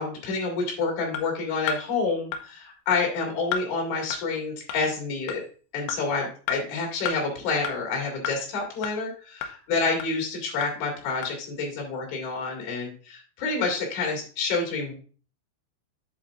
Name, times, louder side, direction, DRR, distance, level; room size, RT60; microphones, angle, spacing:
voice 1, 0.0-5.4 5.7-14.9, left 4 dB, 50° left, -1 dB, 3.0 m, -28 dB
sound 1, 1.1-1.2 1.7-1.8 2.3-2.4 2.9-3.0 3.5-3.6 4.1-4.2 4.7-4.8 5.3-5.4 5.9-6.0 6.5-6.6 7.1-7.2 7.6-7.7 8.2-8.4 8.8-8.9 9.4-9.5 10.0-10.1 10.6-10.7 11.2-11.3, left 7 dB, 80° left, 2.3 m, -30 dB
7.6 x 7.4 x 2.5 m, 0.40 s
omnidirectional pair, 5.1 m